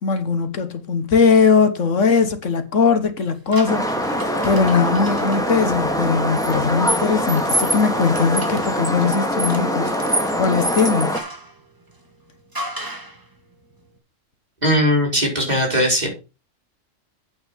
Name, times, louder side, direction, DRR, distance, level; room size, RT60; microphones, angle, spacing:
voice 1, 0.0-4.2 4.4-9.9 10.4-11.2, left 5 dB, 75° left, 1.6 m, -19 dB
sound 1, 3.5-5.4 6.4-11.5 12.5-13.2, right 1 dB, 15° right, 1.5 m, -29 dB
sound 2, 3.7-11.2, equal, 5° left, 1.8 m, -23 dB
voice 2, 14.6-16.1, equal, 35° right, 4.3 m, -19 dB
8.6 x 5.9 x 6.7 m
omnidirectional pair, 1.3 m